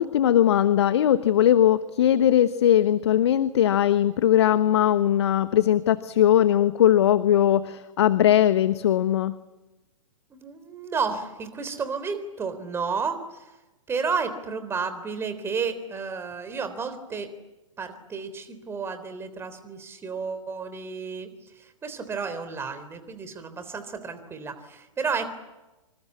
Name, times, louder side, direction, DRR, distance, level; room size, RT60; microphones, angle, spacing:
voice 1, 0.0-9.3, left 11 dB, 55° left, 13 dB, 1.1 m, -20 dB
voice 2, 10.3-13.5 13.9-17.3 17.8-21.3 21.5-25.3, right 5 dB, 15° right, 10 dB, 3.4 m, -32 dB
26.5 x 26.0 x 8.5 m, 1.1 s
figure-of-eight pair, 110°, 17 cm